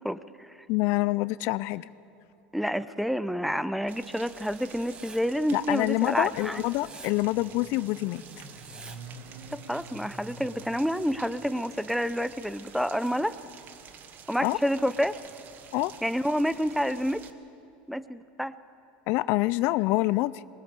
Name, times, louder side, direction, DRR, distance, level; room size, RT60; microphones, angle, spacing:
voice 1, 0.0-0.6 2.5-6.6 9.5-13.3 14.3-15.2 16.0-17.3 17.9-18.6, equal, ahead, 15 dB, 0.6 m, -29 dB
voice 2, 0.7-1.9 5.5-8.2 14.4-14.6 15.7-15.9 19.1-20.3, left 19 dB, 60° left, 18 dB, 0.4 m, -26 dB
Rain, 3.9-17.3, right 8 dB, 45° right, 1.3 m, -50 dB
Writing, 4.2-5.2 6.1-7.1 8.1-9.0 10.1-11.1 12.1-13.1, right 3 dB, 20° right, 1.5 m, -51 dB
Motorcycle, 5.9-13.9, right 2 dB, 75° right, 2.6 m, -49 dB
21.0 x 20.0 x 6.8 m, 2.7 s
supercardioid pair, 115°, 5 cm